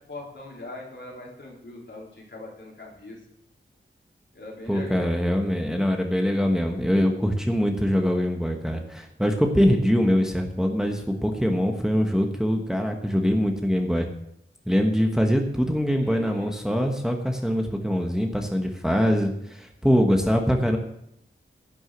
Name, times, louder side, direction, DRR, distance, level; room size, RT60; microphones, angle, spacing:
voice 1, 0.1-3.2 4.3-5.1 16.0-16.5, left 2 dB, 65° left, -2 dB, 3.6 m, -41 dB
voice 2, 4.7-14.1 14.7-20.8, equal, 5° right, 3 dB, 1.3 m, -23 dB
11.0 x 6.3 x 8.0 m, 0.75 s
wide cardioid pair, 90°, 20 cm